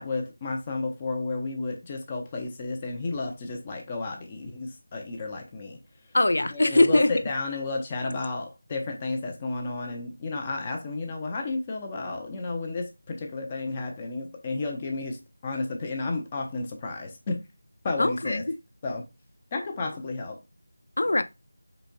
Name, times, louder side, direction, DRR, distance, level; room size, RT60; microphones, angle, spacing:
voice 1, 0.0-5.8 6.5-17.4 17.8-18.4 18.8-19.0 19.5-20.4, left 3 dB, 20° left, 0.6 m, -32 dB
voice 2, 6.1-7.1 18.0-18.6 21.0-21.2, left 2 dB, 65° left, 0.5 m, -21 dB
4.2 x 4.0 x 2.2 m
figure-of-eight pair, 170°, 0 cm